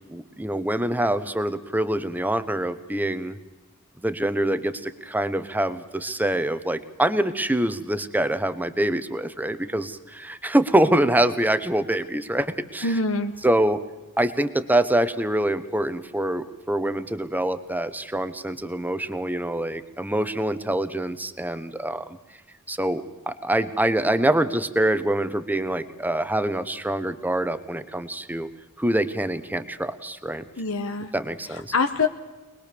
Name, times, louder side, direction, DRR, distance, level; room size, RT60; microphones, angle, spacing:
voice 1, 0.0-3.4 4.0-13.0 13.4-13.8 14.2-22.0 22.7-28.5 28.8-30.4 31.1-31.7, right 1 dB, 10° right, 12 dB, 0.9 m, -25 dB
voice 2, 12.8-13.3 30.6-31.1 31.5-32.1, left 3 dB, 65° left, 7 dB, 1.2 m, -24 dB
24.0 x 20.5 x 6.9 m, 1.1 s
head